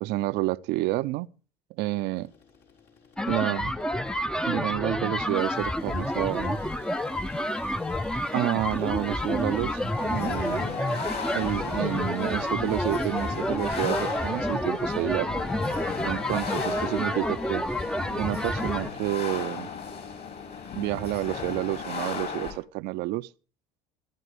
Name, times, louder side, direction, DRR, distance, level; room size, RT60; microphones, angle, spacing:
voice 1, 0.0-1.3 1.8-2.3 3.3-3.7 4.5-6.6 8.3-10.8 11.3-15.4 16.0-17.7 18.2-19.7 20.7-23.3, right 18 dB, 60° right, 0.6 m, -29 dB
sound 1, 2.1-14.5, left 5 dB, 70° left, 4.4 m, -51 dB
sound 2, 3.2-18.9, left 1 dB, 5° left, 0.6 m, -29 dB
sound 3, 10.0-22.5, left 6 dB, 55° left, 6.2 m, -36 dB
25.0 x 11.0 x 3.3 m
hypercardioid pair, 75°, 20 cm